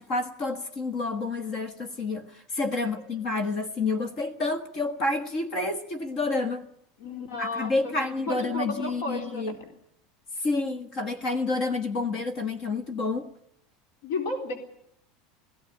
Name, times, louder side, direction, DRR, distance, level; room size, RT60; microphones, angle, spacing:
voice 1, 0.0-6.7 7.4-9.6 10.4-13.3, left 3 dB, 35° left, 11 dB, 1.4 m, -29 dB
voice 2, 7.0-9.4 14.0-14.5, left 2 dB, 85° left, 4 dB, 3.9 m, -33 dB
17.5 x 16.0 x 9.9 m, 0.74 s
supercardioid pair, 180°, 0 cm